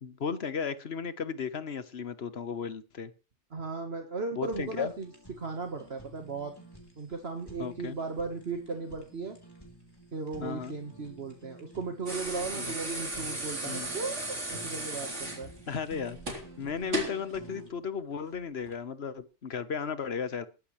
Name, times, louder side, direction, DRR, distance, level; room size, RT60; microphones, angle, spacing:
voice 1, 0.0-3.1 4.3-4.9 7.6-8.0 10.4-10.8 12.6-12.7 13.6-13.9 15.7-20.5, left 6 dB, 60° left, 12 dB, 1.4 m, -35 dB
voice 2, 3.5-5.1 5.4-6.5 7.0-9.4 10.1-15.5, right 4 dB, 60° right, 5 dB, 1.7 m, -36 dB
Fire, 4.4-17.7, equal, 20° left, 3.8 m, -51 dB
sound 1, 12.1-17.2 18.6-18.7, right 2 dB, 80° right, 3.8 m, -36 dB
20.5 x 11.5 x 3.2 m, 0.32 s
omnidirectional pair, 1.2 m